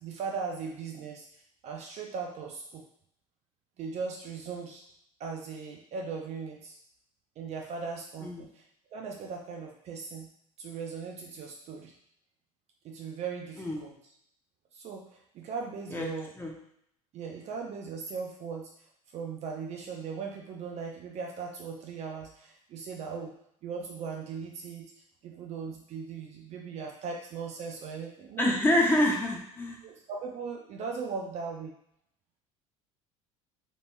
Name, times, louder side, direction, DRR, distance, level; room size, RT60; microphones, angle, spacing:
voice 1, 0.0-1.3 1.6-2.8 3.8-4.8 5.2-6.8 7.4-8.6 8.9-10.3 10.6-11.9 12.8-13.9 14.7-16.3 17.1-18.7 19.1-23.3 23.6-24.9 25.2-28.8 29.8-31.7, right 5 dB, 40° right, 0 dB, 0.6 m, -38 dB
voice 2, 28.4-29.8, left 1 dB, 10° left, -1 dB, 0.8 m, -26 dB
3.9 x 3.0 x 2.2 m, 0.69 s
figure-of-eight pair, 65°, 18 cm